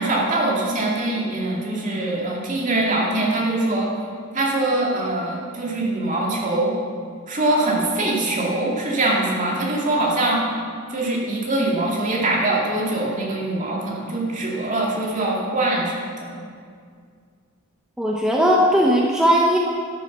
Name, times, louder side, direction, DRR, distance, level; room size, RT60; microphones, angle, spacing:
voice 1, 0.0-3.9 4.3-6.7 7.3-10.4 10.9-16.3, right 2 dB, 40° right, -3 dB, 2.3 m, -23 dB
voice 2, 18.0-19.6, equal, 5° right, -3 dB, 0.8 m, -17 dB
12.0 x 7.2 x 6.5 m, 2.1 s
head